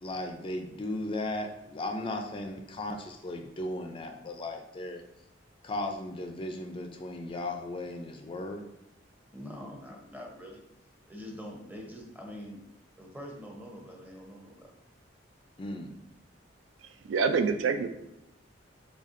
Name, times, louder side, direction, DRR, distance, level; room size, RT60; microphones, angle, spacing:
voice 1, 0.0-5.0 5.6-8.6 15.6-15.9, left 1 dB, 30° left, 4 dB, 0.3 m, -36 dB
voice 2, 9.3-10.6 11.1-12.6 13.0-14.7, equal, 10° right, 0 dB, 0.7 m, -44 dB
voice 3, 16.8-17.9, right 5 dB, 75° right, 8 dB, 0.3 m, -27 dB
4.1 x 3.3 x 2.5 m, 0.85 s
head